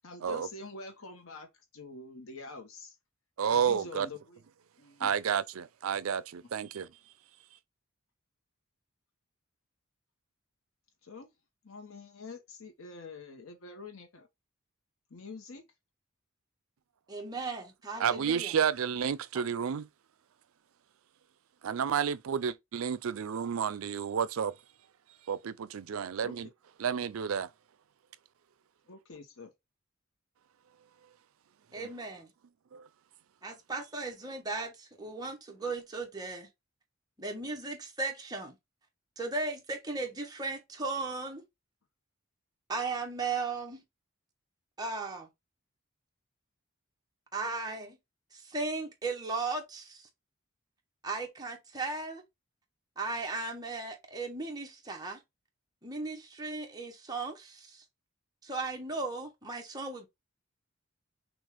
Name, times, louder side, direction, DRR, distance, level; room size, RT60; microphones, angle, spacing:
voice 1, 0.0-3.0 3.5-4.4 4.8-5.1 6.4-6.5 11.0-11.3 11.6-14.3 15.1-15.6 26.2-26.3 28.9-29.5, left 3 dB, 75° left, 0.9 m, -46 dB
voice 2, 3.4-4.1 5.0-6.9 18.0-19.9 21.6-24.5 25.3-26.5 26.8-27.5 32.7-32.9, right 7 dB, 75° right, 0.4 m, -31 dB
voice 3, 17.1-18.5 31.7-32.3 33.4-36.5 37.2-38.6 39.2-41.4 42.7-43.8 44.8-45.3 47.3-48.0 48.3-50.1 51.0-52.2 53.0-55.2 55.8-57.8 58.4-60.1, right 3 dB, 20° right, 1.1 m, -36 dB
6.2 x 2.4 x 3.4 m
head